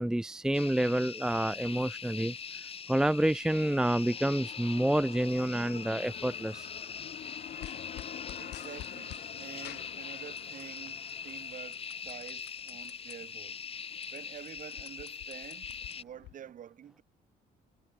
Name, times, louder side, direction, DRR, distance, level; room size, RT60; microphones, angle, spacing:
voice 1, 0.0-2.3 2.9-6.7, right 1 dB, 5° right, 0.6 m, -28 dB
sound 1, 0.5-16.0, left 6 dB, 35° left, 2.2 m, -42 dB
sound 2, 3.6-12.3, left 10 dB, 55° left, 1.9 m, -48 dB
sound 3, 7.6-9.3 9.6-10.8 11.1-13.2 13.6-13.7 13.9-16.3, left 17 dB, 80° left, 1.7 m, -49 dB
voice 2, 8.4-13.7 14.1-17.0, right 9 dB, 50° right, 4.1 m, -48 dB
cardioid pair, 110°, 17 cm